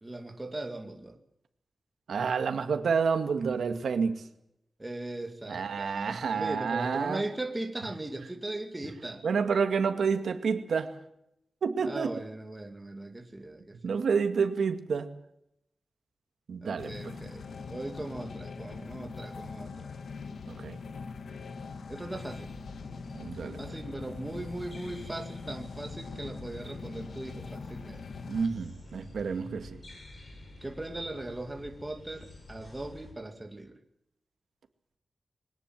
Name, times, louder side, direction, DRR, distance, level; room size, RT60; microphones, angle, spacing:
voice 1, 0.0-1.2 4.8-9.3 11.8-13.9 16.6-19.9 21.9-22.6 23.5-28.0 30.6-33.8, right 2 dB, 15° right, 5 dB, 2.3 m, -39 dB
voice 2, 2.1-4.2 5.5-7.2 9.2-10.9 11.6-12.1 13.8-15.1 16.5-17.2 20.5-20.8 23.1-23.6 28.3-29.8, right 5 dB, 80° right, 7 dB, 2.1 m, -29 dB
sound 1, 16.8-28.5, left 4 dB, 70° left, 1.6 m, -42 dB
sound 2, 22.2-33.1, left 2 dB, 35° left, 6.8 m, -49 dB
21.5 x 19.0 x 7.6 m, 0.80 s
wide cardioid pair, 170°, 0 cm